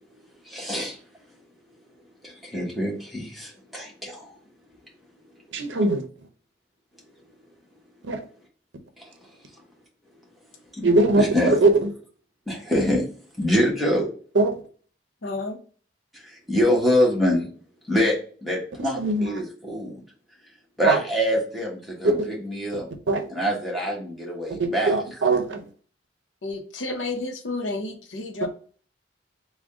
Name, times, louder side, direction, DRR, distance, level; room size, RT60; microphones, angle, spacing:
voice 1, 0.4-1.0 2.2-4.3 9.0-9.1 10.8-11.6 12.5-13.0 13.4-14.1 16.2-17.5 17.9-18.1 18.4-20.0 20.8-22.8 23.3-25.0, equal, ahead, -3 dB, 1.1 m, -25 dB
voice 2, 5.5-6.0 8.0-8.2 10.8-11.9 14.3-14.5 19.0-19.3 20.8-21.0 22.0-22.1 23.1-23.3 24.6-25.6, right 2 dB, 75° right, 5 dB, 0.6 m, -20 dB
voice 3, 15.2-15.6 26.4-28.5, left 2 dB, 80° left, 4 dB, 0.7 m, -31 dB
3.6 x 2.2 x 3.5 m, 0.43 s
head